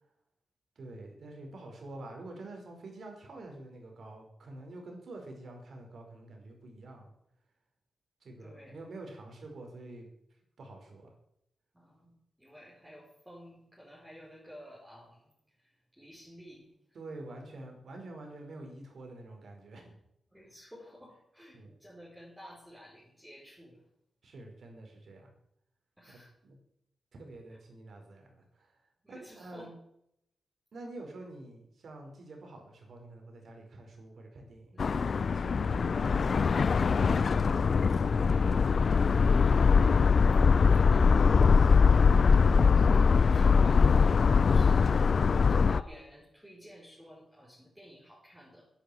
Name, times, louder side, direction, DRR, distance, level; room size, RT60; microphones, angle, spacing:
voice 1, 0.8-7.1 8.2-10.1 10.6-11.1 16.9-20.0 21.5-21.7 24.2-25.3 26.1-26.6 27.1-28.8 29.1-29.7 30.7-34.8 35.3-38.3, right 2 dB, 65° right, 2 dB, 5.1 m, -47 dB
voice 2, 8.4-8.8 11.7-12.1 12.4-15.3 15.6-16.7 20.3-23.8 26.0-26.3 29.0-29.7 39.6-41.7 42.6-48.7, equal, 5° right, -6 dB, 5.3 m, -52 dB
sound 1, 34.8-45.8, left 5 dB, 55° left, 0.5 m, -22 dB
11.0 x 10.0 x 8.8 m, 0.76 s
cardioid pair, 90°, 0 cm